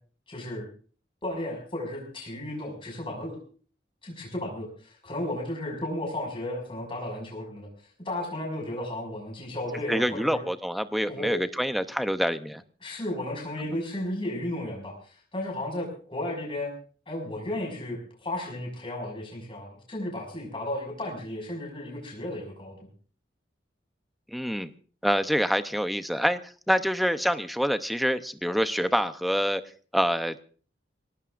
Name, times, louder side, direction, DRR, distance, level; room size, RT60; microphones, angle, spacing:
voice 1, 0.3-0.7 1.2-3.4 4.0-7.7 8.0-10.4 11.1-11.4 12.8-16.7 17.1-22.9, left 1 dB, 30° left, -1 dB, 5.9 m, -34 dB
voice 2, 9.9-12.6 24.3-24.7 25.0-26.4 26.7-29.6 29.9-30.4, equal, ahead, 10 dB, 0.7 m, -26 dB
25.0 x 18.0 x 2.5 m, 0.41 s
head